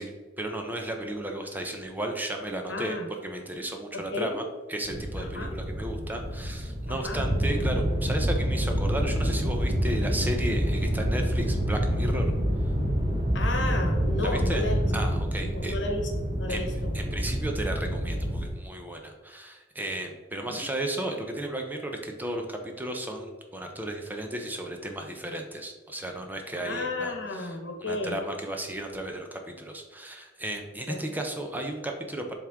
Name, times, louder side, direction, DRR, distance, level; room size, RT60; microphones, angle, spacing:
voice 1, 0.0-4.4 4.7-12.3 14.2-14.6 14.9-15.7 16.5-16.6 16.9-27.5 27.9-32.3, right 1 dB, 10° right, 3 dB, 0.6 m, -34 dB
voice 2, 2.7-3.1 3.9-4.4 5.2-5.6 6.9-7.3 13.3-14.8 15.4-16.1 16.4-16.9 20.5-20.6 26.6-28.2 30.9-31.0, left 2 dB, 70° left, 3 dB, 1.1 m, -33 dB
sound 1, 4.8-18.5, equal, 30° right, 1.1 m, -27 dB
7.4 x 3.6 x 3.6 m, 1.3 s
head